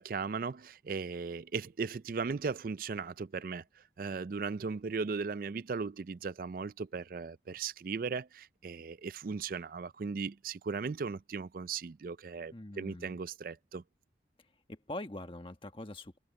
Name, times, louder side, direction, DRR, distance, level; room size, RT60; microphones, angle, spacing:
voice 1, 0.0-13.8, right 5 dB, 50° right, 0.4 m, -37 dB
voice 2, 12.5-13.2 14.7-16.2, left 1 dB, 30° left, 1.3 m, -43 dB
head